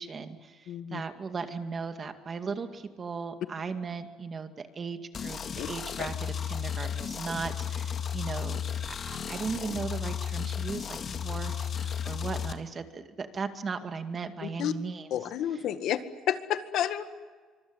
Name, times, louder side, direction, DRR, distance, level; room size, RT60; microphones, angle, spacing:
voice 1, 0.0-0.5 0.9-5.4 5.7-8.6 8.9-15.1, right 5 dB, 30° right, 8 dB, 2.2 m, -37 dB
voice 2, 0.7-1.0 5.6-5.7 6.0-6.1 14.4-14.7 15.1-16.0 16.3-17.1, left 11 dB, 65° left, 10 dB, 1.9 m, -30 dB
sound 1, 5.1-12.5, left 7 dB, 40° left, 2.0 m, -34 dB
25.0 x 24.5 x 9.8 m, 1.4 s
cardioid pair, 125°, 0 cm